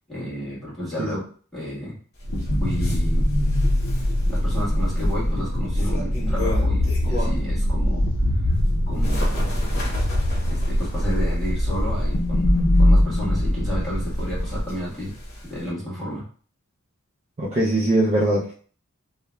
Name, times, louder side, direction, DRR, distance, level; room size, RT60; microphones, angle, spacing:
voice 1, 0.1-1.3 1.5-1.9 2.6-3.3 4.3-8.1 8.9-9.6 10.4-12.5 12.8-15.1 15.5-16.2, equal, ahead, -9 dB, 1.4 m, -32 dB
sound 1, 2.2-14.6, left 1 dB, 65° left, 0.5 m, -22 dB
Bird, 2.2-7.6 8.0-15.7, left 1 dB, 45° left, 1.0 m, -34 dB
voice 2, 17.4-18.5, right 1 dB, 35° right, -6 dB, 0.4 m, -21 dB
2.8 x 2.1 x 2.2 m, 0.42 s
head